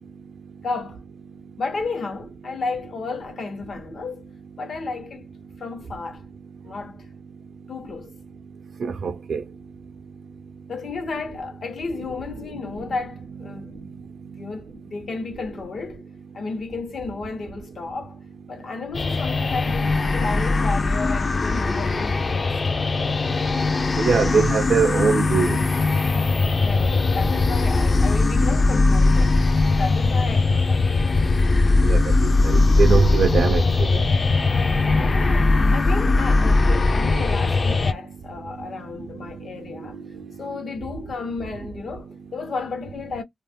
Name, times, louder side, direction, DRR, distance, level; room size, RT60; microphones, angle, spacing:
voice 1, 0.6-1.0 1.6-4.2 4.6-5.3 5.6-6.2 6.6-7.1 7.7-8.1 10.7-14.1 14.4-16.1 16.3-18.2 18.5-22.5 26.6-29.4 29.7-30.9 34.9-40.0 40.4-43.2, left 4 dB, 70° left, 0.9 m, -32 dB
voice 2, 8.8-9.4 24.0-25.6 31.8-32.0 32.4-33.6, right 5 dB, 75° right, 0.4 m, -21 dB
sound 1, 18.9-37.9, left 3 dB, 40° left, 0.4 m, -20 dB
2.4 x 2.2 x 3.4 m
cardioid pair, 75°, 0 cm